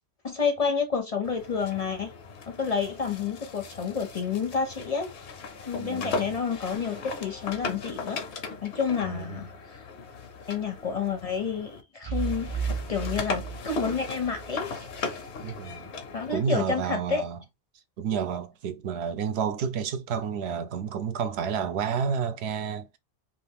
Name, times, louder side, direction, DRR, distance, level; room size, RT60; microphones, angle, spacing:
voice 1, 0.2-2.1 2.5-5.1 5.7-8.2 8.6-9.8 10.5-15.3 16.1-17.2, left 6 dB, 45° left, 0.5 m, -30 dB
sound 1, 1.2-11.8 12.1-16.5, left 4 dB, 90° left, 1.0 m, -38 dB
voice 2, 5.8-6.3 9.0-9.4 15.4-15.9 16.3-17.4 18.0-23.0, right 7 dB, 75° right, 0.8 m, -30 dB
sound 2, 6.7-7.6 12.0-15.0 15.3-15.4, right 6 dB, 55° right, 0.3 m, -35 dB
2.5 x 2.4 x 3.4 m
omnidirectional pair, 1.1 m